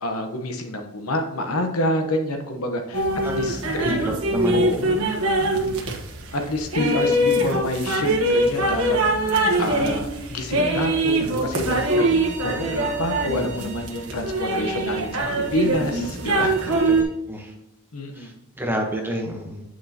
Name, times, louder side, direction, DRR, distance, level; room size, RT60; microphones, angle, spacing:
voice 1, 0.0-3.0 3.3-4.0 4.5-5.1 5.4-5.8 6.3-9.0 9.6-15.2 15.5-16.5 17.9-18.3, left 1 dB, 80° left, 5 dB, 1.1 m, -27 dB
sound 1, 2.9-17.0, right 1 dB, 90° right, 1.3 m, -23 dB
voice 2, 3.8-4.6 16.9-17.0 17.3-17.5 18.1-19.6, right 1 dB, 10° right, 1 dB, 1.1 m, -29 dB
Bowed string instrument, 11.6-17.1, right 4 dB, 35° right, 1.4 m, -42 dB
8.6 x 6.3 x 2.9 m, 0.86 s
head